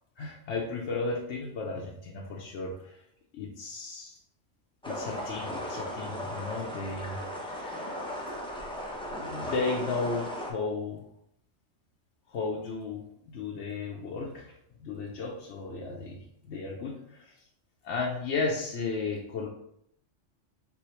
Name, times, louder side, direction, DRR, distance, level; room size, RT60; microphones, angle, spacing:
voice 1, 0.2-3.0 3.3-4.2 4.9-8.0 9.1-11.0 12.3-14.5 14.8-17.5 17.8-19.5, left 3 dB, 70° left, -2 dB, 0.9 m, -34 dB
sound 1, 4.8-10.5, left 1 dB, 5° left, 0.5 m, -36 dB
4.7 x 3.4 x 3.1 m, 0.73 s
omnidirectional pair, 1.3 m